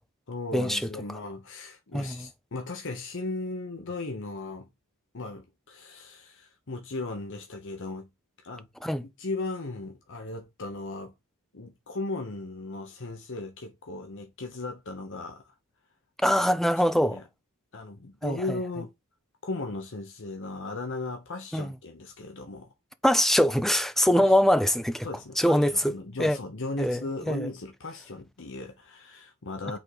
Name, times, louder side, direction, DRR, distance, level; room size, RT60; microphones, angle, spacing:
voice 1, 0.3-4.7 5.1-8.1 8.4-8.7 9.0-11.1 11.5-15.5 16.3-16.4 16.9-17.2 17.7-18.9 19.4-22.7 24.1-24.3 25.0-29.8, left 2 dB, 60° left, 1.0 m, -37 dB
voice 2, 1.9-2.3 8.8-9.0 16.2-17.2 18.2-18.4 21.5-21.7 23.0-25.1 25.4-25.9 26.2-26.4 26.8-27.0 27.3-27.5, equal, ahead, 0.5 m, -23 dB
5.7 x 3.8 x 4.8 m
head